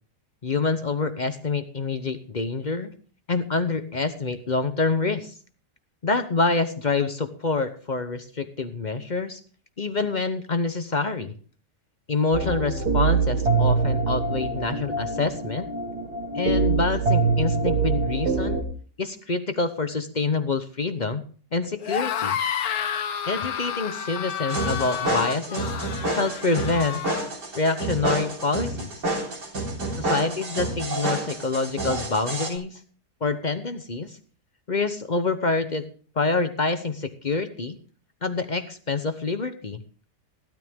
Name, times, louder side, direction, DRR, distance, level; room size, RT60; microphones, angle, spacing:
voice 1, 0.4-2.9 3.3-5.3 6.0-9.4 9.8-11.3 12.1-15.7 16.3-18.6 19.0-21.2 21.5-22.4 23.3-25.7 26.2-27.0 27.5-28.9 30.0-32.8 33.2-34.2 34.7-35.8 36.2-37.8 38.2-39.8, left 3 dB, 40° left, 9 dB, 0.7 m, -26 dB
sound 1, 12.3-18.6, right 4 dB, 65° right, 2.3 m, -24 dB
sound 2, 21.8-27.2, left 8 dB, 65° left, 1.4 m, -30 dB
sound 3, 24.5-32.5, right 1 dB, 85° right, 4.1 m, -29 dB
15.0 x 12.5 x 3.5 m, 0.43 s
omnidirectional pair, 1.8 m